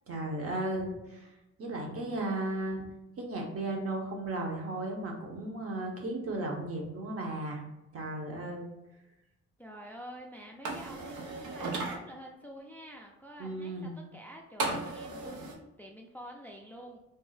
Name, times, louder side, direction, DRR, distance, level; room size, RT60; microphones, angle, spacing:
voice 1, 0.1-1.3 1.6-2.8 3.2-7.6 7.9-8.6 13.4-13.9, right 2 dB, 50° right, 1 dB, 0.8 m, -35 dB
voice 2, 9.6-17.0, equal, 5° left, 1 dB, 0.3 m, -48 dB
sound 1, 10.6-12.0 14.6-15.5, right 3 dB, 85° right, 0.7 m, -35 dB
2.6 x 2.0 x 3.8 m, 0.97 s
cardioid pair, 90°, 30 cm